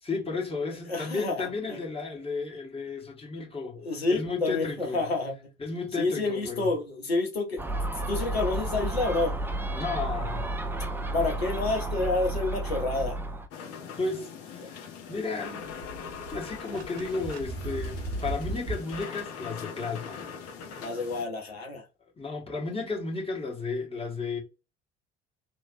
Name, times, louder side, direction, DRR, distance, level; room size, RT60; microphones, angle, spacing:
voice 1, 0.0-3.8 4.1-5.0 5.6-6.7 9.7-10.4 14.0-14.8 15.1-15.7 16.3-20.3 22.2-24.4, left 4 dB, 20° left, 1.5 m, -33 dB
voice 2, 0.9-1.8 3.8-5.4 6.0-7.6 8.1-9.4 11.1-13.2 20.8-21.8, left 3 dB, 85° left, 0.6 m, -29 dB
Gull seagull, 7.6-13.5, right 2 dB, 5° right, 0.4 m, -32 dB
sound 1, 13.5-21.2, left 6 dB, 50° left, 0.9 m, -42 dB
sound 2, 15.4-19.0, right 1 dB, 70° right, 0.9 m, -36 dB
3.1 x 2.5 x 2.5 m
figure-of-eight pair, 50°, 30 cm